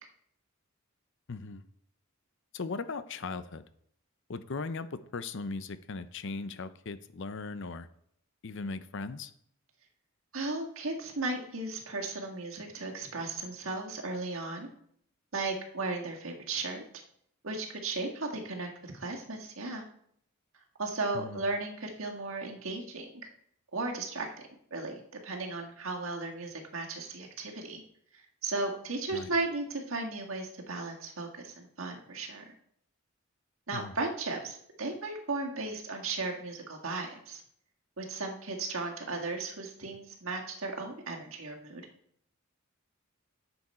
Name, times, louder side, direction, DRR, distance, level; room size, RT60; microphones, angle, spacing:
voice 1, 1.3-1.6 2.5-3.7 4.3-7.9 8.4-9.3 21.1-21.4 29.1-29.3 33.7-33.9, left 3 dB, 60° left, 12 dB, 0.6 m, -38 dB
voice 2, 10.3-14.7 15.3-16.8 17.4-19.9 20.8-23.1 23.7-24.3 24.7-27.8 28.1-32.5 33.7-37.4 38.0-41.8, right 3 dB, 70° right, 1 dB, 1.8 m, -35 dB
10.5 x 7.1 x 4.3 m, 0.68 s
head